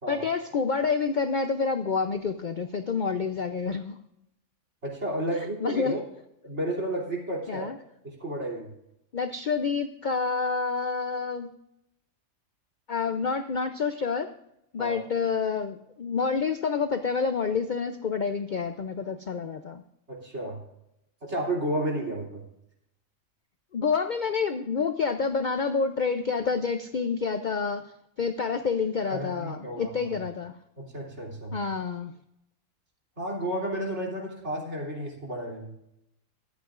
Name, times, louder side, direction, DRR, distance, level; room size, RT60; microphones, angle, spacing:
voice 1, 0.1-4.0 5.6-5.9 7.5-7.8 9.1-11.5 12.9-14.3 14.7-19.8 23.7-27.8 28.2-30.5 31.5-32.1, left 5 dB, 50° left, 8 dB, 0.5 m, -28 dB
voice 2, 4.8-6.0 6.4-7.7 8.0-8.7 14.8-15.0 20.1-20.6 21.2-22.4 29.1-30.1 30.8-31.6 33.2-35.7, right 1 dB, 55° right, -2 dB, 3.4 m, -32 dB
23.0 x 8.3 x 2.5 m, 0.81 s
omnidirectional pair, 1.4 m